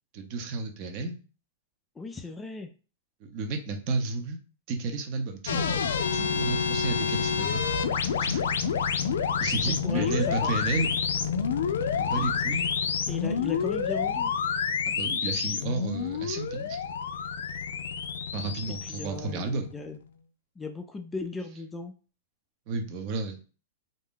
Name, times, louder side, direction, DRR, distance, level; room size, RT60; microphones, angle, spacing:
voice 1, 0.1-1.2 3.2-4.4 4.7-5.9 6.1-7.7 8.2-8.5 9.4-10.9 12.0-12.7 14.9-16.8 18.3-19.7 22.7-23.4, right 3 dB, 40° right, 5 dB, 0.7 m, -32 dB
voice 2, 2.0-2.7 9.8-10.6 13.1-14.3 18.7-20.0 20.6-21.9, left 3 dB, 10° left, 5 dB, 0.3 m, -37 dB
sound 1, 5.5-20.0, left 6 dB, 85° left, 0.4 m, -28 dB
2.6 x 2.2 x 3.6 m, 0.36 s
hypercardioid pair, 140°, 0 cm